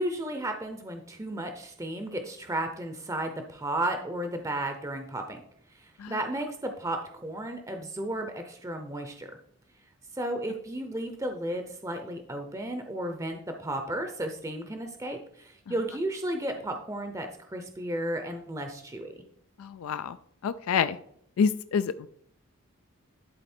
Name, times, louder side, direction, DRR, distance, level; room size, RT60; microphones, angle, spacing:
voice 1, 0.0-5.4 5.7-9.3 10.1-19.1, right 1 dB, 15° right, 5 dB, 0.6 m, -33 dB
voice 2, 19.6-20.2 20.4-21.0 21.4-22.1, left 6 dB, 90° left, 13 dB, 0.3 m, -27 dB
11.5 x 4.0 x 4.3 m, 0.68 s
head